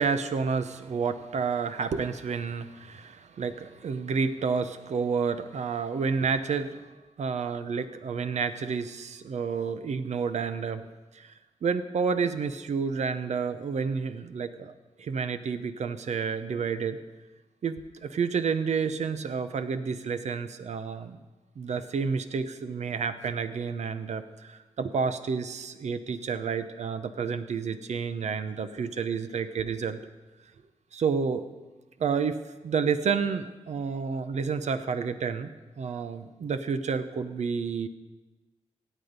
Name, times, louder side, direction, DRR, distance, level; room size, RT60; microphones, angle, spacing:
voice 1, 0.0-6.8 7.2-10.8 11.1-11.3 11.6-14.7 15.0-17.0 17.6-21.2 21.6-30.0 30.9-31.5 32.0-32.4 32.6-37.9, right 5 dB, 80° right, 10 dB, 0.8 m, -30 dB
16.5 x 8.3 x 5.4 m, 1.2 s
cardioid pair, 70°, 12 cm